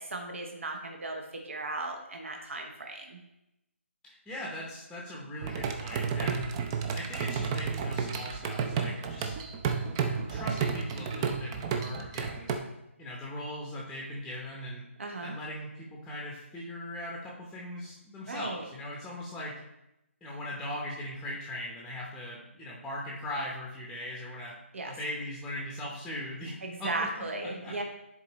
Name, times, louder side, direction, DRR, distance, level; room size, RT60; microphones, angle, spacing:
voice 1, 0.0-3.2 15.0-15.3 18.3-18.6 24.7-24.9 26.6-27.8, right 2 dB, 65° right, 2 dB, 1.1 m, -36 dB
voice 2, 4.0-6.5 6.9-9.3 10.0-12.5 13.0-14.8 15.2-19.6 20.2-24.5 24.8-26.9 27.4-27.7, left 1 dB, 5° left, -4 dB, 0.8 m, -39 dB
sound 1, 5.4-12.6, right 6 dB, 20° right, 0.5 m, -32 dB
10.0 x 4.1 x 3.1 m, 0.89 s
figure-of-eight pair, 155°, 7 cm